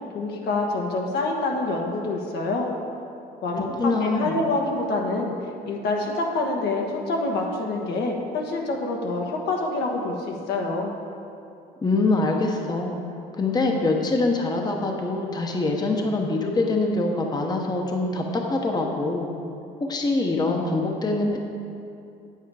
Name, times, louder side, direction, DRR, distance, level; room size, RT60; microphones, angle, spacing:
voice 1, 0.1-2.7 3.4-5.3 5.6-10.9, left 2 dB, 75° left, 0 dB, 1.4 m, -26 dB
voice 2, 3.6-4.4 11.8-13.0 13.3-19.3 19.8-21.4, left 2 dB, 25° left, 1 dB, 1.0 m, -24 dB
8.6 x 8.3 x 4.9 m, 2.7 s
cardioid pair, 110°, 17 cm